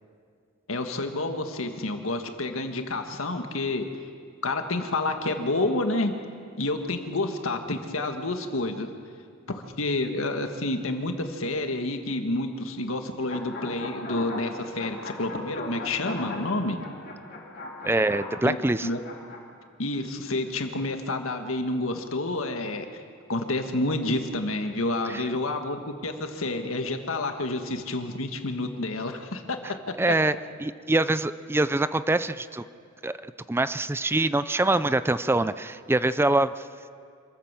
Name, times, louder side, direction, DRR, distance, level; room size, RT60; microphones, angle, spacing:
voice 1, 0.7-3.9 4.4-6.1 6.6-8.9 9.5-16.8 18.4-18.6 18.8-19.0 19.8-22.9 23.3-29.6 30.1-30.2, left 2 dB, 85° left, 6 dB, 1.7 m, -29 dB
sound 1, 13.3-19.4, left 2 dB, 55° left, 3.6 m, -38 dB
voice 2, 17.8-18.9 25.1-25.2 29.6-29.7 30.0-30.3 30.6-32.6 33.0-36.6, right 2 dB, 10° right, 14 dB, 0.4 m, -24 dB
26.5 x 14.0 x 7.5 m, 2.2 s
head